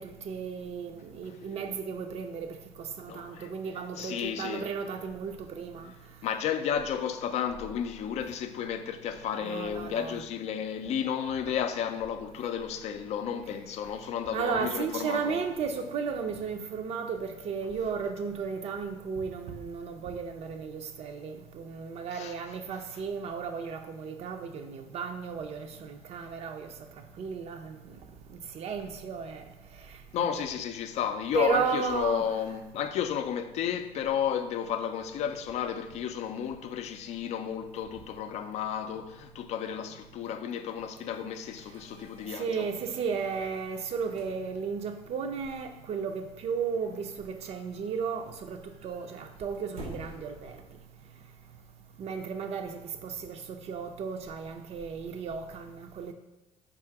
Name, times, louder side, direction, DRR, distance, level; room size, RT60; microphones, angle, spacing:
voice 1, 0.0-2.5 3.0-5.9 9.4-10.2 14.3-26.7 27.2-27.8 28.5-29.4 30.2-30.4 31.3-32.3 42.4-50.5 52.0-56.1, right 6 dB, 55° right, 0.5 m, -34 dB
voice 2, 3.1-3.5 4.0-4.7 6.2-15.4 22.1-22.4 30.1-42.7, left 8 dB, 65° left, 0.4 m, -32 dB
sound 1, 36.1-51.1, right 2 dB, 80° right, 0.9 m, -53 dB
3.6 x 2.5 x 4.6 m
supercardioid pair, 80°, 12 cm